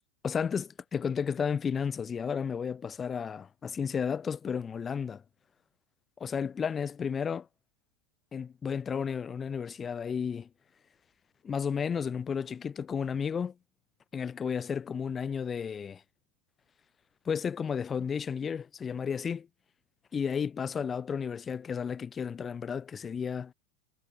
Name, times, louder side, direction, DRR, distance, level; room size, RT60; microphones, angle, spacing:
voice 1, 0.2-5.2 6.2-7.5 8.3-10.5 11.4-13.5 14.1-16.0 17.2-19.5 20.1-23.5, left 6 dB, 20° left, 4.5 m, -33 dB
supercardioid pair, 135°, 0 cm